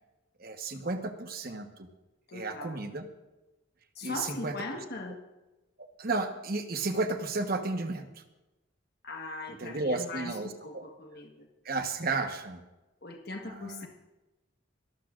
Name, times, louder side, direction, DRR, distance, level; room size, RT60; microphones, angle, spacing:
voice 1, 0.4-1.9 2.3-3.1 4.0-4.8 6.0-8.2 9.5-10.9 11.6-12.6 13.4-13.9, right 3 dB, 50° right, 6 dB, 1.1 m, -33 dB
voice 2, 2.3-2.8 3.9-5.2 9.0-11.5 13.0-13.9, left 2 dB, 55° left, 2 dB, 1.3 m, -40 dB
25.0 x 12.5 x 2.5 m, 1.1 s
head